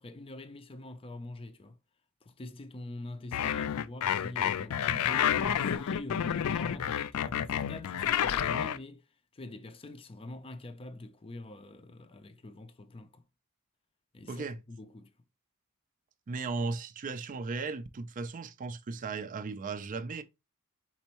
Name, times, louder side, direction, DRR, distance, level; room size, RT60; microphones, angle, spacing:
voice 1, 0.0-1.8 2.2-13.2 14.1-15.1, left 2 dB, 25° left, 0.5 m, -45 dB
sound 1, 3.3-8.8, left 9 dB, 80° left, 0.4 m, -29 dB
voice 2, 16.3-20.2, right 4 dB, 35° right, 0.4 m, -36 dB
4.4 x 4.1 x 2.9 m
head